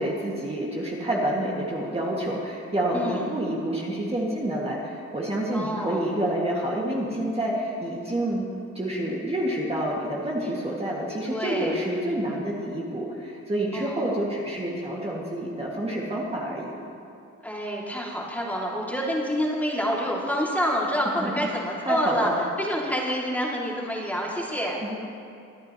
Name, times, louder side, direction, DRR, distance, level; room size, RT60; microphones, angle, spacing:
voice 1, 0.0-8.5 8.7-16.7 21.2-21.3 21.9-22.3 24.8-25.0, right 1 dB, 20° right, -4 dB, 2.1 m, -28 dB
voice 2, 2.9-3.3 5.5-6.0 11.2-11.8 13.7-14.1 17.4-22.3 22.6-24.8, equal, 5° left, -4 dB, 2.5 m, -28 dB
24.5 x 9.3 x 3.1 m, 2.4 s
cardioid pair, 90°, 30 cm